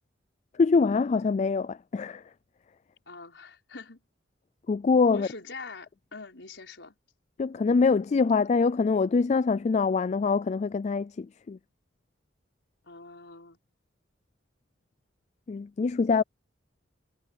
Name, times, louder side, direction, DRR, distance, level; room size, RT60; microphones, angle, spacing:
voice 1, 0.6-2.2 4.7-5.3 7.4-11.6 15.5-16.2, left 4 dB, 40° left, 0.3 m, -24 dB
voice 2, 3.1-4.0 5.1-7.0 12.9-13.6, left 3 dB, 75° left, 5.5 m, -44 dB
head